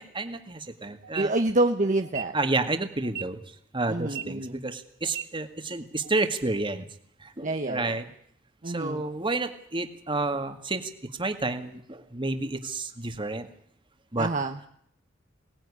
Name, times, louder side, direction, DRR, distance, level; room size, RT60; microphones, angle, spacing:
voice 1, 0.0-1.3 2.3-3.4 3.7-6.9 7.2-8.0 8.7-10.9 11.2-13.5 14.1-14.3, right 2 dB, 25° right, 7 dB, 2.1 m, -30 dB
sound 1, 1.0-1.2 2.0-2.2 3.0-3.2 4.0-4.2 5.0-5.2 6.0-6.2, right 11 dB, 60° right, 0.9 m, -35 dB
voice 2, 1.2-2.3 3.9-4.6 7.4-8.0 8.6-9.0 14.2-14.6, right 2 dB, 40° right, 4 dB, 1.2 m, -27 dB
23.0 x 19.0 x 9.9 m, 0.68 s
head